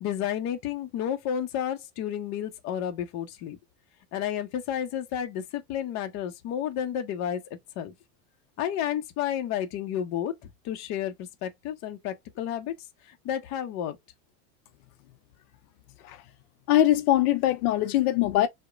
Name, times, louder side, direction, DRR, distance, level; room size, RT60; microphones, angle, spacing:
voice 1, 0.0-3.6 4.1-7.4 7.8-7.9 8.6-12.8 13.1-14.0, left 10 dB, 40° left, 0.7 m, -31 dB
voice 2, 16.7-18.5, left 13 dB, 80° left, 0.6 m, -22 dB
2.8 x 2.1 x 2.3 m
supercardioid pair, 125°, 44 cm